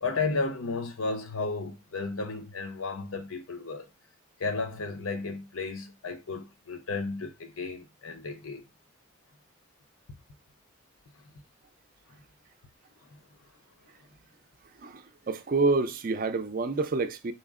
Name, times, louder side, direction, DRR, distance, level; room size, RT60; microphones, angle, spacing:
voice 1, 0.0-3.9 4.4-8.6, left 3 dB, 80° left, 0.7 m, -33 dB
voice 2, 14.8-17.3, right 3 dB, 40° right, 0.4 m, -28 dB
4.3 x 2.1 x 3.6 m
head